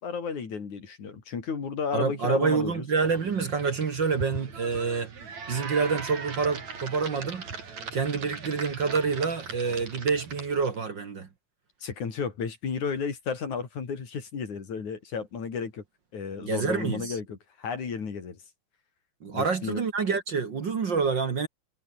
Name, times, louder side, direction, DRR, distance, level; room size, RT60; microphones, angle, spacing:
voice 1, 0.0-2.8 11.8-15.8 16.1-18.4 19.3-19.8, left 6 dB, 80° left, 5.2 m, -33 dB
voice 2, 1.9-5.1 5.5-7.4 7.9-11.3 16.4-17.2 19.2-21.5, right 5 dB, 45° right, 2.1 m, -27 dB
sound 1, 3.0-10.7, right 5 dB, 70° right, 5.3 m, -39 dB
omnidirectional pair, 3.4 m